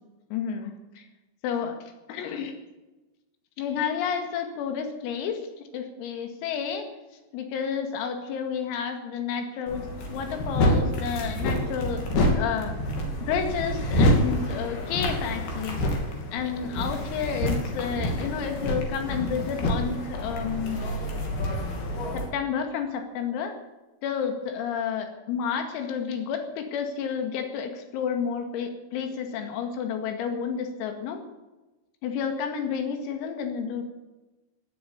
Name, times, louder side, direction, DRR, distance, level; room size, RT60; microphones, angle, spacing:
voice 1, 0.3-1.0 1.4-1.8 2.1-2.5 3.6-5.4 5.7-6.9 7.3-12.8 13.3-15.8 16.3-20.8 22.1-23.6 24.0-31.2 32.0-33.8, left 7 dB, 90° left, 5 dB, 4.8 m, -30 dB
sound 1, 9.7-22.3, equal, 55° left, 4.4 m, -27 dB
18.0 x 9.6 x 8.3 m, 1.1 s
omnidirectional pair, 5.9 m